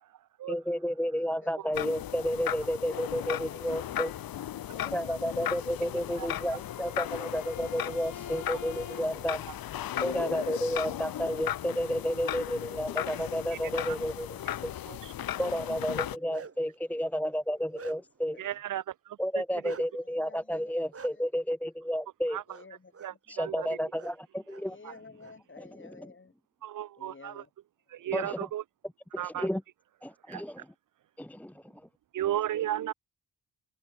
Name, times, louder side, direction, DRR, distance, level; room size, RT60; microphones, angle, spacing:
voice 1, 0.5-4.1 4.8-9.4 10.0-14.3 15.4-18.4 19.2-22.4 23.3-24.8 28.1-28.4 29.2-29.6 30.0-30.6 31.2-31.6, equal, 5° left, 0.8 m, -31 dB
voice 2, 1.1-1.5 2.8-4.2 8.5-8.6 8.9-9.3 13.5-14.8 15.8-16.3 18.3-18.6 20.0-20.7 21.1-21.2 22.5-23.9 24.6-26.3 27.0-27.5 27.9-28.1, left 4 dB, 35° left, 5.2 m, -53 dB
sound 1, 1.7-16.2, left 12 dB, 90° left, 1.5 m, -36 dB
Bowed string instrument, 6.0-9.4, left 7 dB, 60° left, 2.9 m, -47 dB
Bark, 16.1-16.7 17.3-18.3 19.6-19.8 20.9-21.1 22.5-22.7 22.9-23.1 23.9-24.1 24.5-25.3, right 5 dB, 40° right, 2.8 m, -47 dB
voice 3, 18.4-19.2 19.6-19.7 22.3-22.4 23.0-23.7 24.8-24.9 26.6-27.4 27.9-28.6 29.2-29.5 30.3-30.4 32.1-32.9, right 12 dB, 65° right, 0.6 m, -34 dB
open air
cardioid pair, 80°, 34 cm